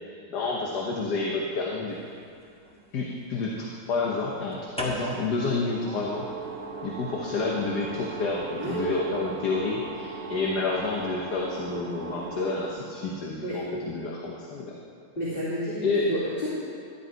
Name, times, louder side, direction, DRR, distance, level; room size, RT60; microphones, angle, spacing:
voice 1, 0.0-2.0 2.9-6.2 6.8-14.8 15.8-16.1, left 3 dB, 70° left, -2 dB, 1.6 m, -29 dB
sound 1, 2.3-3.1 4.5-12.7, right 3 dB, 5° left, 1.6 m, -38 dB
voice 2, 8.6-9.0 13.4-13.6 15.2-16.5, equal, 30° left, -11 dB, 2.8 m, -30 dB
13.0 x 11.0 x 4.6 m, 2.4 s
omnidirectional pair, 1.8 m